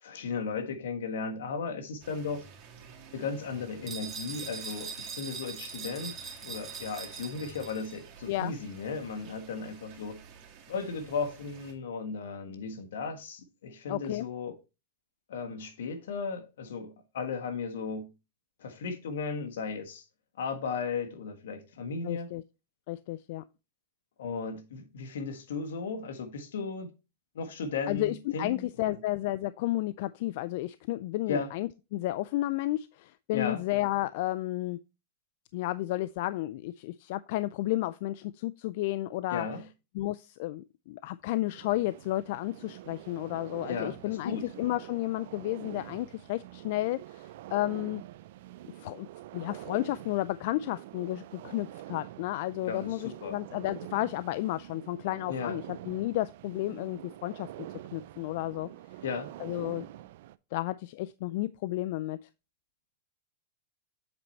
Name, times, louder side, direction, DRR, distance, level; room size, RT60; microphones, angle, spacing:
voice 1, 0.0-2.5 3.1-10.2 10.7-14.6 15.3-18.1 18.6-20.0 20.4-22.3 24.2-26.9 27.3-29.0 31.3-31.5 33.3-33.6 39.3-39.7 43.6-44.5 52.6-53.4 55.3-55.6 59.0-59.3, left 5 dB, 80° left, 1.4 m, -36 dB
sound 1, 2.0-11.7, right 6 dB, 45° right, 2.5 m, -52 dB
sound 2, 3.9-8.0, right 5 dB, 20° right, 1.9 m, -41 dB
voice 2, 13.9-14.3 22.0-22.4 22.9-23.4 27.9-34.8 35.5-39.5 39.9-48.0 48.8-49.1 49.3-57.5 57.9-58.7 59.4-59.9 60.5-62.2, left 16 dB, 60° left, 0.3 m, -32 dB
sound 3, 41.4-60.4, right 14 dB, 65° right, 0.4 m, -46 dB
7.8 x 4.4 x 4.1 m
supercardioid pair, 135°, 0 cm